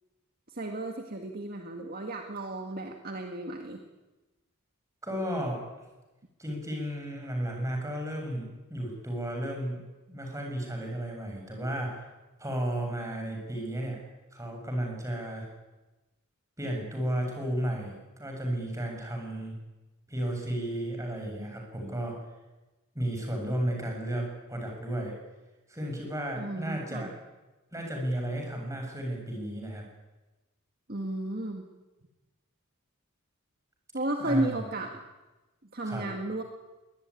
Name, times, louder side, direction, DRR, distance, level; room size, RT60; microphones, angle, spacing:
voice 1, 0.5-3.8 26.4-27.1 30.9-31.6 33.9-35.0 35.7-36.4, right 1 dB, 45° right, 3 dB, 1.9 m, -33 dB
voice 2, 5.0-5.7 6.4-12.0 12.4-14.0 14.3-15.5 16.6-19.5 20.1-22.2 22.9-25.2 25.7-27.1 27.7-29.9 34.2-34.7 35.8-36.1, right 1 dB, 15° right, 2 dB, 7.2 m, -33 dB
23.0 x 19.5 x 9.7 m, 1.1 s
head